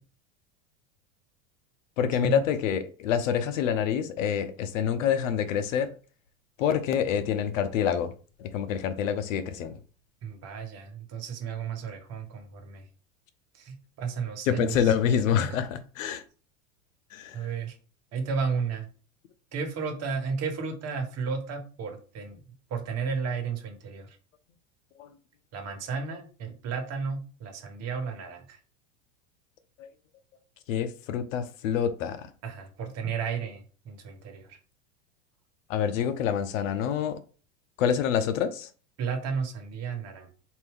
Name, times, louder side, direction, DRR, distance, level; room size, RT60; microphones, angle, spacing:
voice 1, 2.0-5.9 6.6-8.1 8.4-9.8 14.5-16.2 17.1-17.4 25.0-25.1 29.8-29.9 30.7-32.3 35.7-37.2 37.8-38.7, left 8 dB, 85° left, 0.7 m, -27 dB
voice 2, 10.2-12.8 13.5-14.9 17.3-17.8 18.1-18.9 19.5-22.4 22.7-24.2 25.5-28.6 32.4-34.6 39.0-40.3, right 5 dB, 40° right, 1.1 m, -33 dB
4.2 x 2.6 x 3.5 m
supercardioid pair, 115°, 38 cm